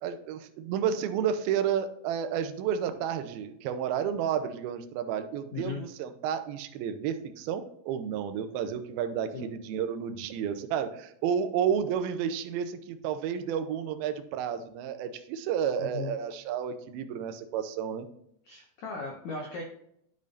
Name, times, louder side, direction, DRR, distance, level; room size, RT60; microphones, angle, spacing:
voice 1, 0.0-18.1, right 8 dB, 80° right, 8 dB, 2.3 m, -31 dB
voice 2, 5.5-5.8 9.3-9.5 15.8-16.1 18.4-19.6, left 4 dB, 85° left, 1 dB, 1.6 m, -37 dB
12.0 x 5.3 x 2.6 m, 0.73 s
omnidirectional pair, 4.9 m